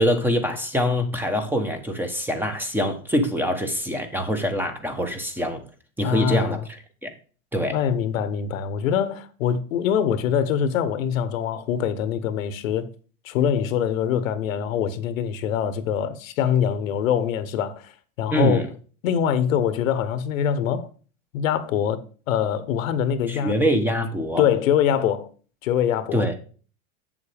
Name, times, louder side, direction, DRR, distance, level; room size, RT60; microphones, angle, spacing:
voice 1, 0.0-5.7 6.0-7.1 7.5-7.8 18.3-18.7 23.3-24.4 26.1-26.3, equal, 5° right, 1.1 m, -24 dB
voice 2, 6.0-6.6 7.7-12.9 13.2-17.9 18.2-18.6 19.0-20.9 21.3-23.5 24.4-25.3 25.6-26.2, left 8 dB, 80° left, 1.2 m, -24 dB
7.8 x 7.4 x 3.4 m
supercardioid pair, 125°, 40 cm